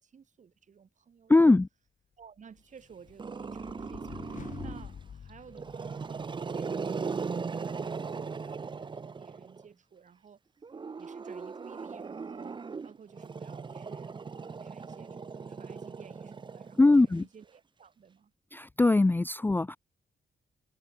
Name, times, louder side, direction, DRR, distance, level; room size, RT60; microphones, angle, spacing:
voice 1, 0.0-1.4 2.2-10.4 11.0-18.3, right 6 dB, 45° right, 7.3 m, -54 dB
voice 2, 1.3-1.7 16.8-17.2 18.5-19.8, left 2 dB, 10° left, 0.5 m, -21 dB
sound 1, 2.6-6.4, left 7 dB, 45° left, 2.5 m, -47 dB
Growling, 3.2-4.9 5.5-9.6 10.6-17.1, right 5 dB, 25° right, 1.0 m, -38 dB
wide cardioid pair, 160°, 18 cm